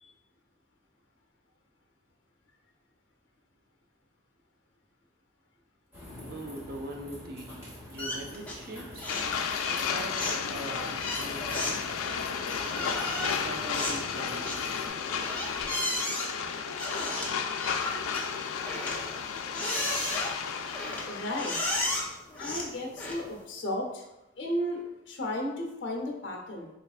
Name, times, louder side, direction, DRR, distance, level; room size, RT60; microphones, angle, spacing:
sound 1, 5.9-14.9, left 1 dB, 15° right, 1.2 m, -46 dB
voice 1, 6.3-9.1 9.6-11.9 12.7-14.7, right 1 dB, 45° right, 3 dB, 0.5 m, -42 dB
sound 2, 8.0-8.7 9.0-9.4 9.6-23.4, left 1 dB, 10° left, 0.5 m, -35 dB
sound 3, 9.1-22.1, left 6 dB, 80° left, 0.3 m, -33 dB
voice 2, 21.0-21.6 22.4-24.0 24.4-26.7, left 1 dB, 60° left, 1 dB, 0.8 m, -34 dB
4.9 x 3.3 x 2.4 m, 0.91 s
head